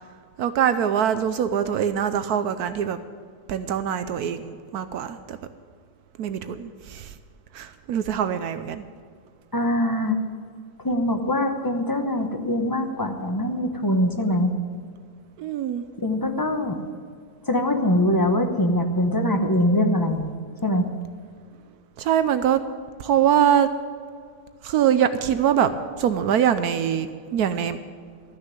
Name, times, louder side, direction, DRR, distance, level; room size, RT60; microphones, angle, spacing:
voice 1, 0.4-3.0 3.5-5.4 6.2-7.1 7.5-8.8 15.4-15.8 22.0-22.6 23.0-23.7 24.6-25.7 26.0-27.8, right 9 dB, 75° right, 11 dB, 1.1 m, -23 dB
voice 2, 9.5-10.2 10.8-14.5 16.0-16.9 17.5-20.2 20.6-20.9, left 1 dB, 15° left, 5 dB, 0.8 m, -23 dB
13.5 x 6.6 x 9.6 m, 2.1 s
omnidirectional pair, 1.7 m